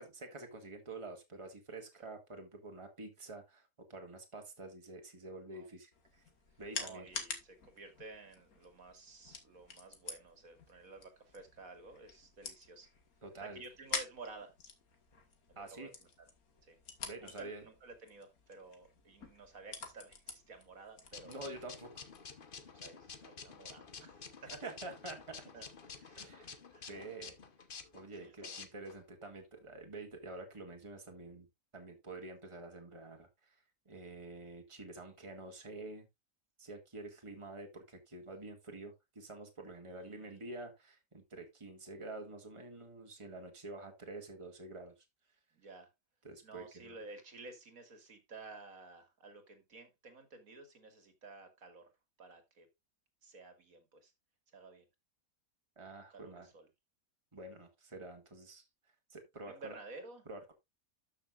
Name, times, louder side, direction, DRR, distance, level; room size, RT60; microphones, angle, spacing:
voice 1, 0.0-6.2 6.6-7.1 13.2-13.6 15.6-15.9 17.1-17.6 21.3-22.1 24.5-25.4 26.2-26.6 26.9-27.4 27.9-31.5 31.7-36.1 36.6-44.9 46.2-47.0 55.8-56.5 57.3-58.6 59.1-59.8 60.3-60.5, right 2 dB, 20° right, 2.0 m, -48 dB
sound 1, 5.9-22.3, left 5 dB, 75° left, 2.1 m, -48 dB
voice 2, 6.8-12.9 13.4-14.5 15.7-16.1 16.6-16.8 17.2-21.4 22.7-24.7 25.5-25.7 25.9-26.3 26.7-26.9 28.1-28.8 39.9-40.4 45.5-45.9 46.4-51.9 52.2-52.7 53.2-54.1 54.5-54.9 56.1-56.7 59.4-60.2, right 3 dB, 70° right, 2.6 m, -53 dB
sound 2, 21.1-29.0, left 5 dB, 40° left, 1.1 m, -50 dB
12.5 x 6.5 x 2.4 m
omnidirectional pair, 1.5 m